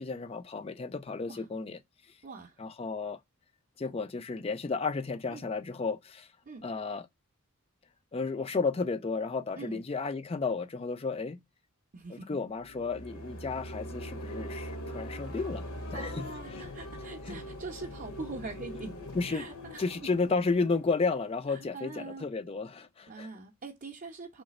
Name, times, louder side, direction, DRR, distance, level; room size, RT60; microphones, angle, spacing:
voice 1, 0.0-1.8 2.6-3.2 3.8-6.3 6.6-7.1 8.1-11.4 12.1-15.6 15.9-16.6 17.3-17.4 19.1-19.5 19.8-23.3, left 4 dB, 25° left, 0.3 m, -32 dB
voice 2, 2.2-2.6 5.3-5.5 6.4-6.7 9.5-9.8 11.9-12.4 15.9-20.1 21.5-22.3 23.1-24.4, right 3 dB, 40° right, 0.6 m, -43 dB
sound 1, 12.6-21.6, equal, 70° left, 1.0 m, -42 dB
3.2 x 3.1 x 4.1 m
head